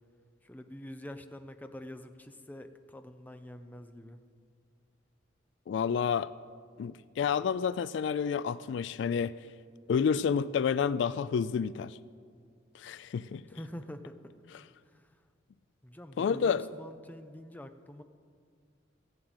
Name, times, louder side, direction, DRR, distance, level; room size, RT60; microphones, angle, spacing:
voice 1, 0.4-4.2 13.4-14.2 14.9-15.1 15.8-18.0, left 1 dB, 10° left, 8 dB, 0.6 m, -46 dB
voice 2, 5.7-6.3 6.8-9.3 9.9-12.0 12.7-13.4 16.2-16.6, left 6 dB, 65° left, 17 dB, 0.3 m, -29 dB
15.5 x 7.6 x 8.0 m, 2.1 s
head